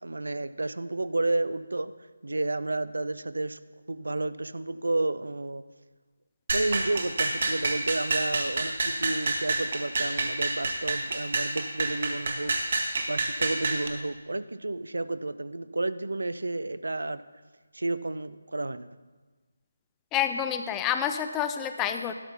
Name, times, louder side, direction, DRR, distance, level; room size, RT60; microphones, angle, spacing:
voice 1, 0.0-1.9 2.2-3.6 3.9-5.6 6.5-17.2 17.7-18.9, right 2 dB, 75° right, 14 dB, 0.4 m, -31 dB
sound 1, 6.5-13.9, right 3 dB, 50° right, 1.1 m, -28 dB
voice 2, 20.1-22.1, left 9 dB, 15° left, 8 dB, 0.3 m, -28 dB
12.0 x 4.4 x 5.7 m, 1.3 s
figure-of-eight pair, 155°, 0 cm